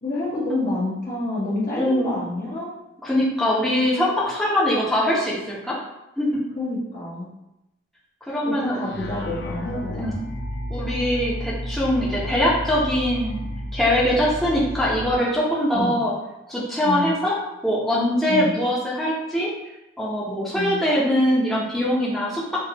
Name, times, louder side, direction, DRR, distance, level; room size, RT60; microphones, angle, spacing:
voice 1, 0.0-2.7 6.6-7.3 8.4-10.1 15.7-16.0 16.8-17.1 18.3-18.5 20.5-20.8, left 2 dB, 45° left, -8 dB, 1.3 m, -28 dB
voice 2, 1.8-2.2 3.0-5.7 6.2-6.4 8.3-8.8 10.0-10.3 10.7-16.1 16.5-17.4 17.6-19.5 20.0-22.4, left 1 dB, ahead, -7 dB, 1.0 m, -22 dB
sound 1, 8.8-15.2, equal, 65° left, 0.5 m, -32 dB
6.1 x 2.7 x 2.9 m, 0.91 s
head